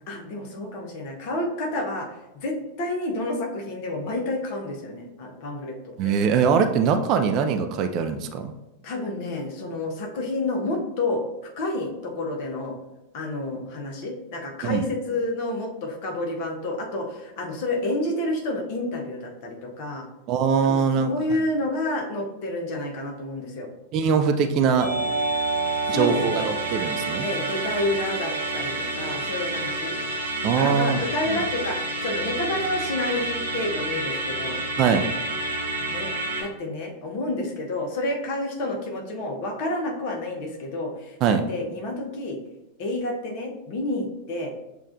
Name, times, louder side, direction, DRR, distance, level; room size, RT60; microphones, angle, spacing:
voice 1, 0.1-6.1 8.8-11.2 11.6-12.7 13.1-20.1 20.6-23.7 25.9-26.5 27.2-29.9 30.6-34.6 35.8-36.1 36.4-41.1 41.5-42.4 42.8-44.5, left 2 dB, 45° left, 2 dB, 0.9 m, -29 dB
voice 2, 6.0-8.5 14.6-14.8 20.3-21.1 23.9-24.9 25.9-27.3 30.4-31.4 34.8-35.1 41.2-41.4, right 6 dB, 40° right, 7 dB, 0.3 m, -22 dB
Musical instrument, 24.8-36.4, right 2 dB, 75° right, 0.9 m, -28 dB
7.1 x 2.4 x 2.5 m, 0.96 s
figure-of-eight pair, 90°, 0 cm